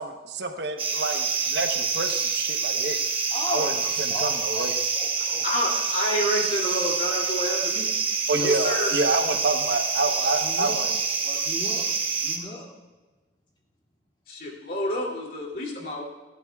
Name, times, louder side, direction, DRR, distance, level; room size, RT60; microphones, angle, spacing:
voice 1, 0.0-3.0 3.5-3.7 4.0-4.7 8.3-11.0, right 2 dB, 60° right, 5 dB, 1.0 m, -28 dB
sound 1, 0.8-12.4, right 5 dB, 30° right, 1.2 m, -27 dB
voice 2, 3.3-3.7 4.1-5.5 10.1-10.8 11.2-11.9 12.2-12.7, left 1 dB, 25° left, -3 dB, 2.5 m, -36 dB
voice 3, 5.4-7.9 8.3-8.9 14.3-16.0, left 1 dB, 50° left, -2 dB, 2.8 m, -28 dB
29.0 x 11.5 x 2.4 m, 1.2 s
head